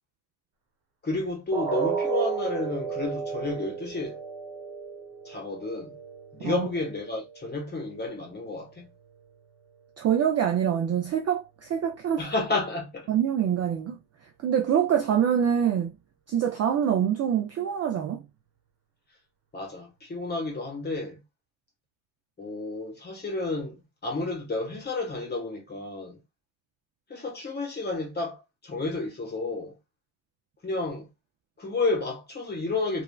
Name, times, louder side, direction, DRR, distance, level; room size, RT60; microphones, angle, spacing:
voice 1, 1.0-4.2 5.2-6.0 6.3-8.9 12.2-13.1 19.5-21.2 22.4-26.2 27.1-29.8 30.6-31.1 31.6-33.0, left 3 dB, 20° left, 1.1 m, -31 dB
sound 1, 1.5-7.5 7.9-8.1 8.5-8.6, right 6 dB, 70° right, 1.2 m, -33 dB
voice 2, 10.0-12.2 13.1-14.0 14.4-15.9 16.3-18.2, right 9 dB, 35° right, 0.4 m, -25 dB
3.2 x 2.5 x 2.2 m
cardioid pair, 130°, 49 cm